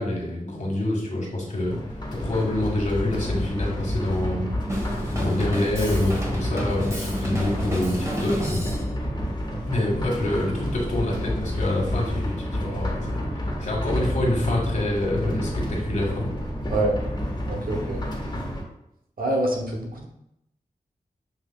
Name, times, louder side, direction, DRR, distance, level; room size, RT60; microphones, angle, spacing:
voice 1, 0.0-1.8 2.1-4.5 5.1-8.6 9.7-16.3, left 1 dB, 55° left, -2 dB, 1.6 m, -26 dB
sound 1, 1.6-18.6, equal, 30° left, 1.3 m, -30 dB
Drum kit, 4.7-8.9, equal, 20° right, 1.3 m, -31 dB
voice 2, 17.5-18.0 19.2-20.0, right 1 dB, 80° right, 0 dB, 0.9 m, -25 dB
7.0 x 2.8 x 2.3 m, 0.80 s
cardioid pair, 40°, 15 cm